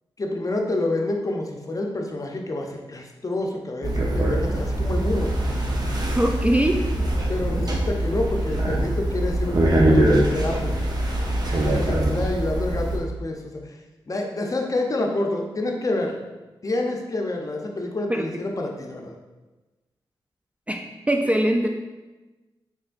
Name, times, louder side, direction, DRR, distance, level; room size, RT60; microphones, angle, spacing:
voice 1, 0.2-5.3 7.3-10.8 11.6-13.7 14.1-16.2 16.6-19.1, left 2 dB, 35° left, 1 dB, 0.6 m, -28 dB
sound 1, 3.8-13.0, right 1 dB, 45° right, 0.7 m, -23 dB
voice 2, 6.1-6.8 18.1-18.2 20.7-21.7, right 1 dB, 15° right, 3 dB, 0.3 m, -22 dB
4.2 x 3.0 x 2.5 m, 1.2 s
supercardioid pair, 45°, 10 cm